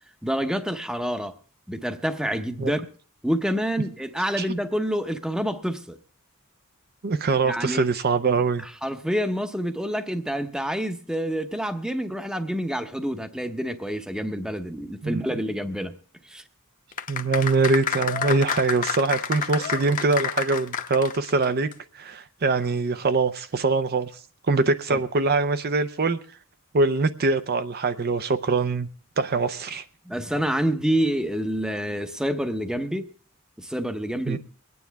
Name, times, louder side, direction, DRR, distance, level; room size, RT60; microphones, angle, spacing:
voice 1, 0.2-1.4 1.7-2.9 3.2-6.0 7.4-7.8 8.6-15.9 16.3-16.4 24.9-25.0 30.0-33.1 33.6-34.4, equal, 5° right, 9 dB, 0.8 m, -27 dB
voice 2, 7.0-8.6 15.0-15.2 17.1-21.7 21.9-24.1 24.5-26.2 26.7-28.9 29.2-29.8 34.3-34.4, right 3 dB, 45° right, 10 dB, 0.6 m, -23 dB
sound 1, 16.9-21.4 21.7-21.8, left 7 dB, 40° left, 0.8 m, -29 dB
23.5 x 9.5 x 3.4 m, 0.43 s
head